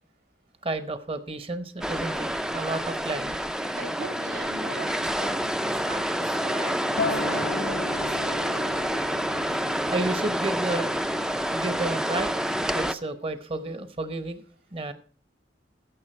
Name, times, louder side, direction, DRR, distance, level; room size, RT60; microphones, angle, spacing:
voice 1, 0.6-2.3 2.5-3.4 9.9-11.0 11.5-12.3 12.7-14.4 14.7-14.9, right 2 dB, 30° right, 10 dB, 0.9 m, -31 dB
sound 1, 1.8-12.9, equal, 5° right, 0.4 m, -28 dB
voice 2, 3.7-8.6, right 2 dB, 75° right, 4 dB, 4.9 m, -40 dB
Acoustic guitar, 7.0-12.2, left 3 dB, 70° left, 0.5 m, -36 dB
15.5 x 6.7 x 4.4 m, 0.42 s
head